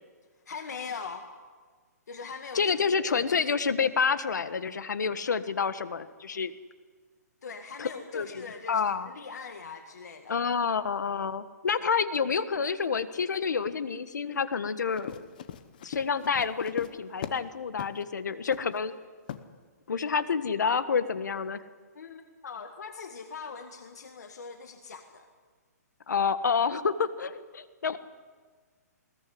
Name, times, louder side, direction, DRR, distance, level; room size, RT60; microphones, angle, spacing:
voice 1, 0.5-1.3 2.1-3.1 7.4-10.3 21.9-25.3, left 5 dB, 70° left, 6 dB, 1.9 m, -41 dB
voice 2, 2.5-6.5 7.8-9.1 10.3-15.2 15.8-18.9 19.9-21.6 26.1-28.0, left 6 dB, 90° left, 12 dB, 1.5 m, -28 dB
Run, 14.9-17.5 17.8-18.0 18.5-18.8 19.3-19.5, left 9 dB, 30° left, 0.9 m, -40 dB
20.5 x 19.0 x 9.5 m, 1.5 s
hypercardioid pair, 180°, 9 cm